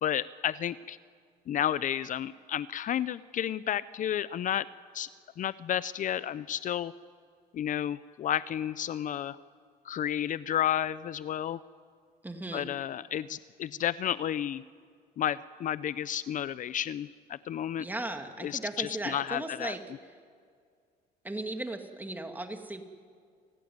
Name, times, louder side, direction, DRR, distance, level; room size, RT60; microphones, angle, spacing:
voice 1, 0.0-1.0 1.5-4.7 4.9-5.1 5.4-6.9 7.5-9.4 9.8-11.6 12.5-14.6 15.2-17.9 18.4-19.7, left 10 dB, 50° left, 17 dB, 0.6 m, -31 dB
voice 2, 12.2-12.7 17.8-19.8 21.2-22.8, right 2 dB, 10° right, 5 dB, 2.4 m, -37 dB
29.0 x 17.0 x 9.6 m, 2.1 s
cardioid pair, 110°, 17 cm